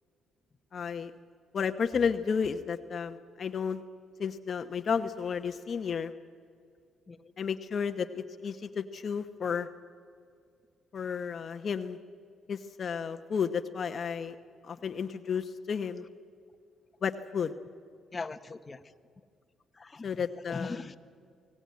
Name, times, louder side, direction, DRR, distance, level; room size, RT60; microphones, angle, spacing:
voice 1, 0.7-1.1 1.5-3.8 4.2-6.1 7.4-9.7 10.9-12.0 12.5-14.3 14.6-16.0 17.0-17.5 20.0-20.8, left 6 dB, 50° left, 8 dB, 1.0 m, -32 dB
voice 2, 18.1-18.9 19.7-20.1 20.5-21.0, left 4 dB, 25° left, 8 dB, 1.1 m, -40 dB
24.5 x 17.0 x 9.5 m, 2.3 s
cardioid pair, 90°, 0 cm